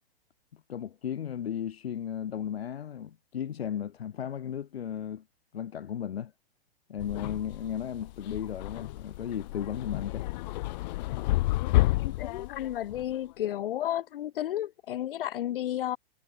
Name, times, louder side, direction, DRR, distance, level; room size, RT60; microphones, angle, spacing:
voice 1, 0.7-5.2 5.5-6.3 6.9-10.3, left 9 dB, 80° left, 7.1 m, -35 dB
sound 1, 7.0-13.1, left 18 dB, 45° left, 2.3 m, -30 dB
voice 2, 12.0-16.0, left 12 dB, 60° left, 5.6 m, -32 dB
hypercardioid pair, 155°, 30 cm